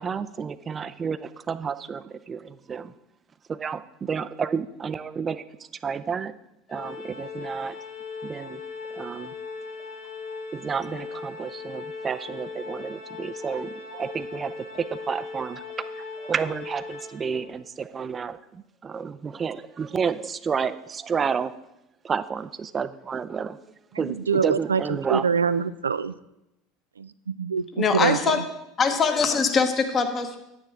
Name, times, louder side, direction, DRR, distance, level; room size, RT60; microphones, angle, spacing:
voice 1, 0.0-2.9 3.5-5.4 5.8-6.3 6.7-7.8 8.2-8.6 8.9-9.3 10.5-21.5 22.0-23.6 24.0-25.3, right 6 dB, 30° right, 0.5 m, -31 dB
Organ, 6.7-17.6, left 4 dB, 50° left, 2.8 m, -38 dB
voice 2, 24.0-26.1 27.0-28.4, right 6 dB, 85° right, 0.3 m, -25 dB
voice 3, 27.7-28.4 28.8-30.4, left 5 dB, 35° left, 1.3 m, -22 dB
9.9 x 9.5 x 3.6 m
hypercardioid pair, 75°, 0 cm